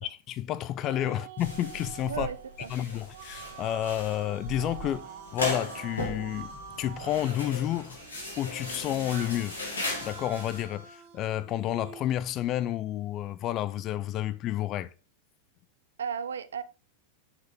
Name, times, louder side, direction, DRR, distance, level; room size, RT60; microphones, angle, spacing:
voice 1, 0.0-2.3 2.7-6.5 6.8-8.0 8.4-9.6 10.0-14.9, left 12 dB, 35° left, 0.5 m, -30 dB
sound 1, 0.8-12.0, right 8 dB, 45° right, 1.2 m, -46 dB
sound 2, 1.4-10.6, left 2 dB, 70° left, 2.9 m, -37 dB
voice 2, 2.1-2.7 16.0-16.6, right 7 dB, 65° right, 0.6 m, -34 dB
7.1 x 6.5 x 3.3 m
figure-of-eight pair, 90°, 0 cm